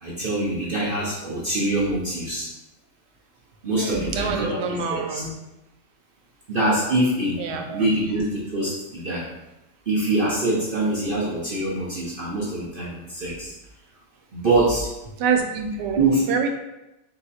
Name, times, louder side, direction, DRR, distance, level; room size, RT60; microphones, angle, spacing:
voice 1, 0.0-2.5 3.6-4.6 4.9-5.3 6.5-9.3 9.9-13.5 14.3-14.9 16.0-16.3, right 2 dB, 55° right, -7 dB, 0.6 m, -24 dB
voice 2, 3.7-5.3 7.4-7.8 15.2-16.5, right 5 dB, 80° right, 4 dB, 1.2 m, -26 dB
3.8 x 2.8 x 4.1 m, 0.96 s
omnidirectional pair, 1.9 m